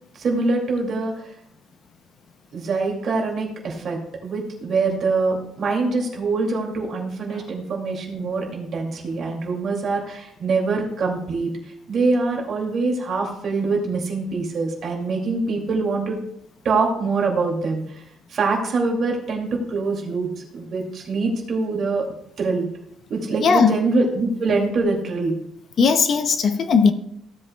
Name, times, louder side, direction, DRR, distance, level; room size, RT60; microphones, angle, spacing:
voice 1, 0.2-1.1 2.5-11.5 11.9-16.2 16.6-18.0 18.3-22.1 22.4-22.7 23.1-25.3, right 3 dB, 45° right, 2.3 m, -24 dB
voice 2, 23.4-23.8 25.8-26.9, left 5 dB, 40° left, 0.6 m, -17 dB
15.5 x 7.6 x 2.2 m
cardioid pair, 160°, 0 cm